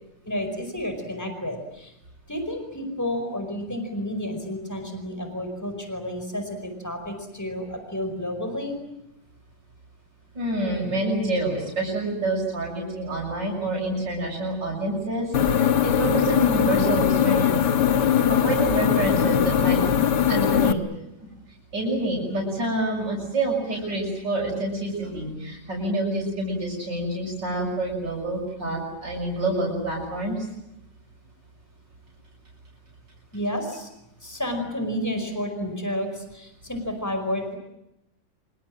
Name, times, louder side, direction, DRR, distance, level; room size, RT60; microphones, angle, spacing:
voice 1, 0.2-1.9 2.3-8.8 33.3-33.9 34.2-37.6, left 1 dB, 10° left, 6 dB, 5.1 m, -31 dB
voice 2, 10.3-17.6 18.3-19.8 20.3-20.8 21.2-21.3 21.7-30.5, right 1 dB, 80° right, -2 dB, 7.3 m, -27 dB
sound 1, 15.3-20.7, left 9 dB, 75° left, 1.8 m, -21 dB
27.0 x 24.5 x 7.7 m, 0.87 s
omnidirectional pair, 1.9 m